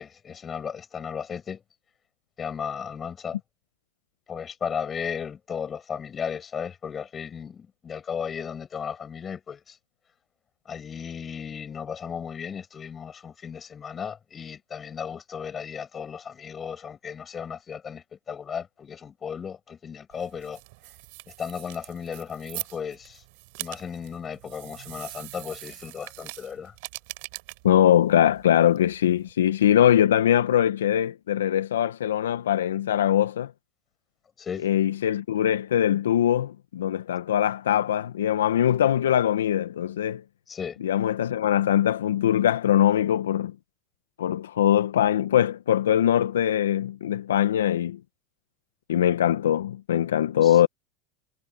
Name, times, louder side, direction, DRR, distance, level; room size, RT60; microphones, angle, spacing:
voice 1, 0.0-1.6 2.4-3.4 4.3-9.8 10.7-20.6 21.3-23.2 23.6-26.7 34.4-34.7 40.5-40.8 50.4-50.6, left 7 dB, 30° left, 6.9 m, -35 dB
sound 1, 20.1-29.3, right 28 dB, 65° right, 5.8 m, -42 dB
voice 2, 27.6-33.5 34.6-40.2 40.8-43.5 44.2-48.0 48.9-50.7, left 10 dB, 90° left, 1.0 m, -22 dB
hypercardioid pair, 100°, 0 cm